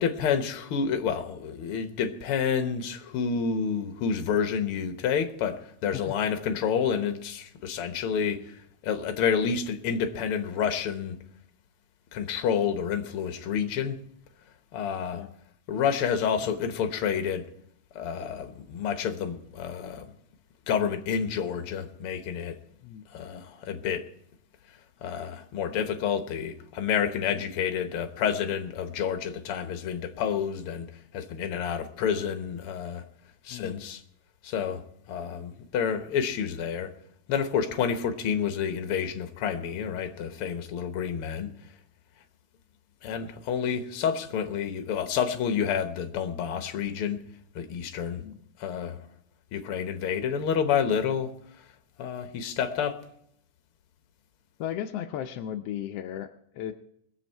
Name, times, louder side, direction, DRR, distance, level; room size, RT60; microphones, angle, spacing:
voice 1, 0.0-11.2 12.1-14.0 14.7-15.2 15.7-17.4 17.9-20.0 20.7-22.6 23.1-24.1 25.0-30.9 31.1-33.0 33.4-34.0 34.4-36.9 37.3-41.5 43.0-47.2 47.5-48.2 48.6-49.0 49.5-51.3 52.0-53.0, left 7 dB, 60° left, 1.6 m, -29 dB
voice 2, 33.5-33.8 48.1-48.4 54.6-56.7, left 10 dB, 80° left, 1.4 m, -36 dB
21.5 x 8.0 x 4.4 m
omnidirectional pair, 3.5 m